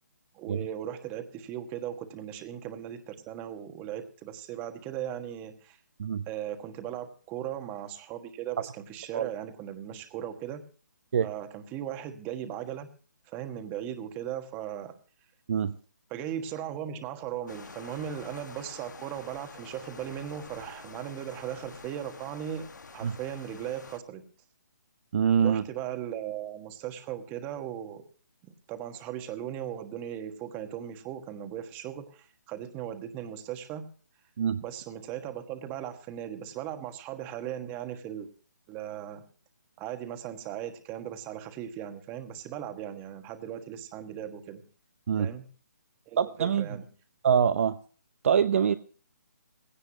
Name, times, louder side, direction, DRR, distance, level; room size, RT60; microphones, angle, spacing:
voice 1, 0.3-5.8 6.3-10.6 11.2-12.9 13.3-15.0 16.1-22.7 22.9-24.2 25.4-28.0 28.4-33.9 34.6-38.3 38.7-39.2 39.8-44.6 45.2-45.5 46.1-46.8, right 10 dB, 15° right, 7 dB, 1.4 m, -38 dB
sound 1, 17.5-24.0, left 4 dB, 85° left, 1.6 m, -47 dB
voice 2, 25.1-25.6 34.4-34.6 45.1-45.3 46.2-46.7 47.2-47.8 48.2-48.8, right 8 dB, 50° right, 11 dB, 0.7 m, -24 dB
17.0 x 16.5 x 2.9 m, 0.39 s
hypercardioid pair, 160°, 10 cm